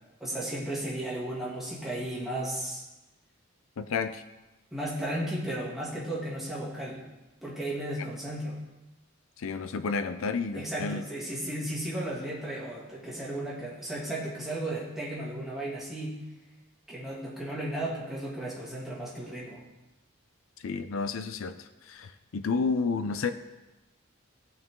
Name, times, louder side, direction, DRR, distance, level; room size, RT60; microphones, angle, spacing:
voice 1, 0.2-2.8 4.7-7.0 7.4-8.6 10.5-16.2 16.9-19.6, right 1 dB, ahead, -6 dB, 2.4 m, -34 dB
voice 2, 3.8-4.2 9.4-11.0 20.6-21.6 21.9-23.3, left 4 dB, 75° left, 11 dB, 0.5 m, -30 dB
16.5 x 5.9 x 3.7 m, 1.0 s
head